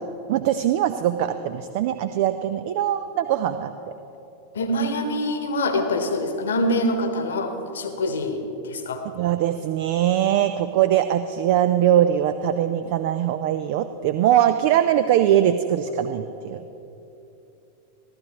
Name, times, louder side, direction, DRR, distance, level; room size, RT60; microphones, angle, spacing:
voice 1, 0.3-3.7 9.2-16.6, right 11 dB, 50° right, 10 dB, 0.4 m, -21 dB
voice 2, 4.5-9.0, left 1 dB, 65° left, 7 dB, 1.1 m, -25 dB
15.0 x 13.5 x 3.0 m, 2.9 s
figure-of-eight pair, 90°, 0 cm